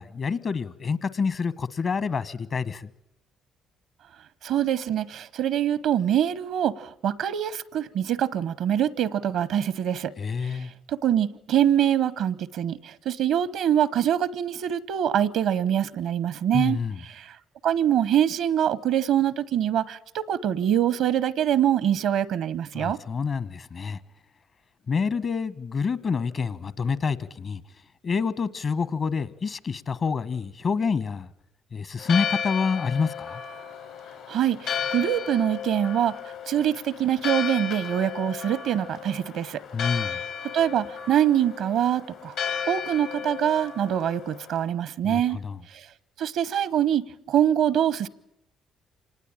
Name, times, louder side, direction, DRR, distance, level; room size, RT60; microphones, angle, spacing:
voice 1, 0.0-2.9 10.2-10.7 16.5-17.0 22.7-24.0 24.9-27.6 28.0-31.3 31.7-33.4 39.7-40.2 45.0-45.6, left 5 dB, 50° left, 1.1 m, -27 dB
voice 2, 4.4-10.1 10.4-10.5 10.9-16.8 17.1-17.3 17.6-23.0 34.3-36.2 36.5-39.6 40.5-42.3 42.7-45.4 45.7-45.8 46.2-48.1, right 10 dB, 75° right, 0.8 m, -24 dB
Church bell, 32.0-44.7, left 7 dB, 80° left, 4.0 m, -34 dB
25.5 x 19.5 x 8.8 m
supercardioid pair, 60°, 0 cm